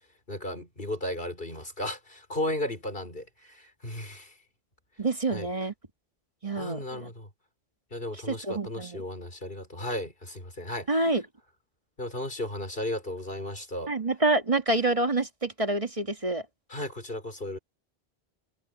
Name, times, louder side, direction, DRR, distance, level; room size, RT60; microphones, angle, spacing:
voice 1, 0.3-4.3 5.3-5.5 6.5-7.3 7.9-11.0 12.0-13.9 16.7-17.6, left 1 dB, 65° left, 5.6 m, -35 dB
voice 2, 5.0-5.7 6.4-7.1 8.1-9.0 10.9-11.2 13.9-16.4, right 2 dB, 35° right, 1.9 m, -27 dB
omnidirectional pair, 1.0 m